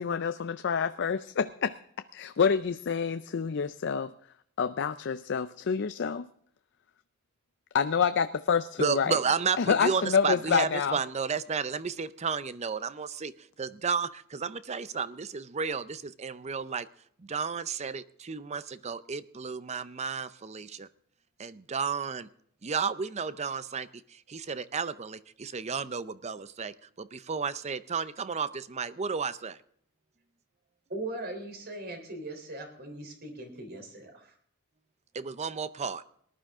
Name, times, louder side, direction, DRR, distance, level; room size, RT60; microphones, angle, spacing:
voice 1, 0.0-1.7 2.1-4.1 4.6-6.3 7.7-9.2 9.6-11.0, left 6 dB, 55° left, 10 dB, 0.5 m, -27 dB
voice 2, 8.8-16.9 17.2-20.9 21.4-22.3 22.6-29.6 35.1-36.0, right 5 dB, 30° right, 15 dB, 0.5 m, -32 dB
voice 3, 30.9-34.3, right 2 dB, 45° right, 4 dB, 3.5 m, -39 dB
19.0 x 11.5 x 3.6 m, 0.64 s
head